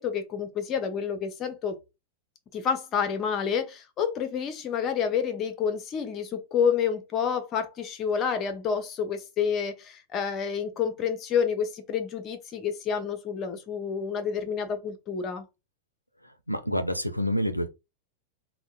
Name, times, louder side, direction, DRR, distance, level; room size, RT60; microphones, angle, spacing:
voice 1, 0.0-1.8 2.5-15.4, left 7 dB, 30° left, 0.5 m, -29 dB
voice 2, 16.5-17.7, equal, 90° left, 0.3 m, -27 dB
3.6 x 2.0 x 2.3 m
figure-of-eight pair, 90°, 0 cm